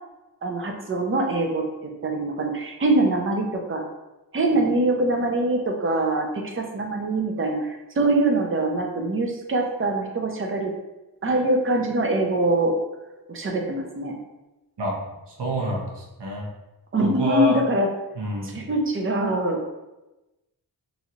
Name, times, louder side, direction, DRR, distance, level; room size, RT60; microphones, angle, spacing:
voice 1, 0.4-1.6 2.0-3.8 4.3-10.7 11.2-12.8 13.3-14.1 16.9-17.9 18.5-19.7, right 2 dB, 30° right, 2 dB, 0.5 m, -23 dB
voice 2, 15.3-16.5 17.0-17.6 18.1-18.6, left 1 dB, 75° right, -3 dB, 0.9 m, -27 dB
3.1 x 2.5 x 2.7 m, 1.0 s
wide cardioid pair, 120°, 41 cm